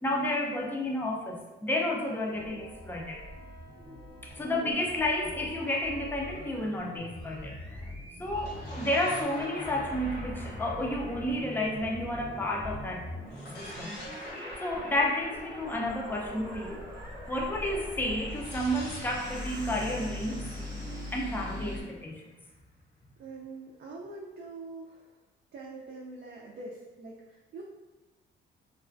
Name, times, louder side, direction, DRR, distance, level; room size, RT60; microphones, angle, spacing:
voice 1, 0.0-3.2 4.2-7.8 8.2-13.1 13.5-13.9 14.2-16.8 17.3-20.7 21.1-22.2, left 1 dB, 10° left, -1 dB, 0.4 m, -31 dB
sound 1, 2.3-21.8, left 1 dB, 20° right, 0.8 m, -42 dB
sound 2, 8.3-12.7 13.3-17.2 18.3-22.1, left 1 dB, 60° left, 0.8 m, -46 dB
voice 2, 23.2-25.2 25.5-27.6, right 3 dB, 55° right, -3 dB, 0.4 m, -44 dB
2.3 x 2.2 x 2.4 m, 1.1 s
cardioid pair, 90°, 20 cm